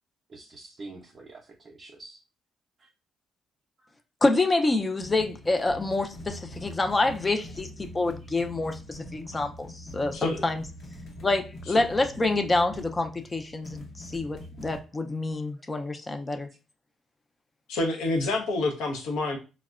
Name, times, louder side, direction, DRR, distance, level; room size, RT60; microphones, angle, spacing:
voice 1, 0.3-2.2 2.8-2.9 6.6-6.7 7.5-7.6, right 2 dB, 40° right, 0.4 m, -46 dB
voice 2, 4.2-7.7 7.9-10.6 11.2-16.5, left 2 dB, 25° left, 0.4 m, -27 dB
sound 1, 5.0-14.8, left 1 dB, 60° left, 0.8 m, -43 dB
voice 3, 10.1-10.4 11.7-11.8 17.7-19.4, left 2 dB, 90° left, 0.6 m, -28 dB
3.5 x 2.0 x 2.3 m
cardioid pair, 90°, 0 cm